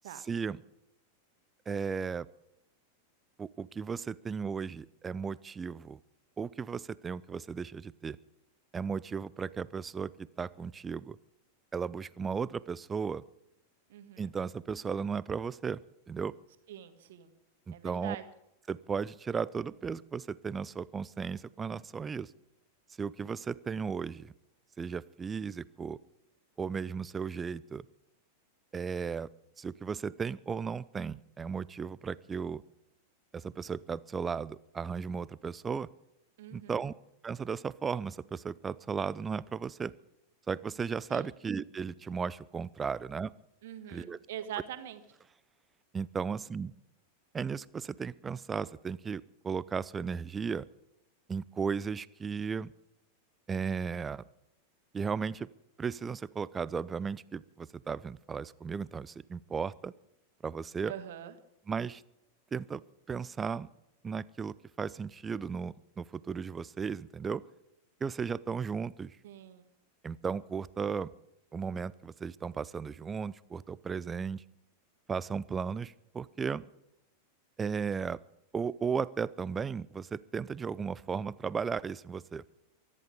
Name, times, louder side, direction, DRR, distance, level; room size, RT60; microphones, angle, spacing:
voice 1, 0.2-0.6 1.7-2.3 3.4-6.0 6.4-8.2 8.7-11.2 11.7-13.2 14.2-15.8 16.1-16.3 17.7-18.2 18.7-22.3 23.0-24.3 24.8-26.0 26.6-27.8 28.7-29.3 29.6-32.6 33.3-35.9 36.5-36.9 37.2-39.9 40.5-43.3 43.9-44.2 45.9-46.7 47.3-50.6 51.3-52.7 53.5-54.2 54.9-55.5 55.8-59.9 60.4-60.9 61.7-62.0 62.5-62.8 63.1-63.7 64.0-67.4 68.0-69.2 70.0-71.1 71.5-74.4 75.1-76.6 77.6-78.2 78.5-82.4, right 6 dB, 20° right, 20 dB, 0.5 m, -35 dB
voice 2, 13.9-14.3 16.7-17.3 17.7-18.2 36.4-36.8 41.1-41.3 43.6-45.0 60.9-61.3 69.2-69.7, right 11 dB, 55° right, 10 dB, 1.5 m, -43 dB
23.5 x 11.0 x 5.0 m, 0.84 s
figure-of-eight pair, 90°, 0 cm